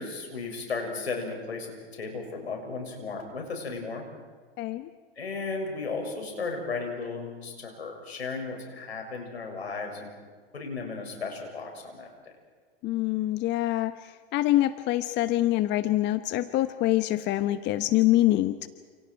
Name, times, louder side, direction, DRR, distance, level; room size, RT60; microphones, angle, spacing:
voice 1, 0.0-4.0 5.2-10.1 10.5-12.1, left 4 dB, 85° left, 2 dB, 6.5 m, -35 dB
voice 2, 4.6-4.9 12.8-18.7, left 15 dB, 35° left, 12 dB, 1.1 m, -25 dB
29.5 x 28.0 x 4.7 m, 1.6 s
hypercardioid pair, 100°, 31 cm